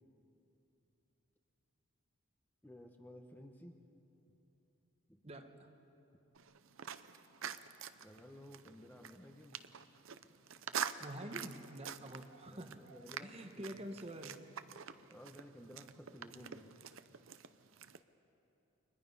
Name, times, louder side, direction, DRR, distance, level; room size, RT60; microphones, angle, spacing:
voice 1, 2.6-3.7 5.1-5.2 8.0-9.6 12.5-14.0 15.1-16.7, equal, 10° left, 3 dB, 1.1 m, -55 dB
voice 2, 5.2-5.7 11.0-12.8 13.2-14.4, right 1 dB, 30° right, 6 dB, 1.1 m, -47 dB
sound 1, 6.4-18.0, right 8 dB, 65° right, 0.7 m, -47 dB
30.0 x 23.5 x 5.5 m, 3.0 s
head